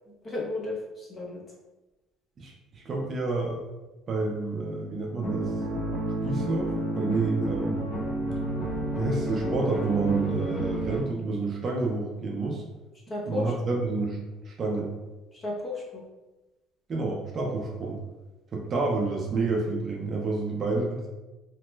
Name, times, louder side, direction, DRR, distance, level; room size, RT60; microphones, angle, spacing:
voice 1, 0.2-1.4 13.1-13.5 15.3-16.0, left 2 dB, 20° left, -3 dB, 0.6 m, -33 dB
voice 2, 2.4-3.6 4.1-5.5 6.2-7.9 9.0-12.6 13.3-14.2 14.4-14.9 16.9-18.0 18.5-21.1, right 3 dB, 30° right, 0 dB, 0.4 m, -29 dB
sound 1, 5.2-11.0, right 1 dB, 65° left, 1.2 m, -30 dB
2.9 x 2.1 x 3.2 m, 1.1 s
cardioid pair, 170°, 0 cm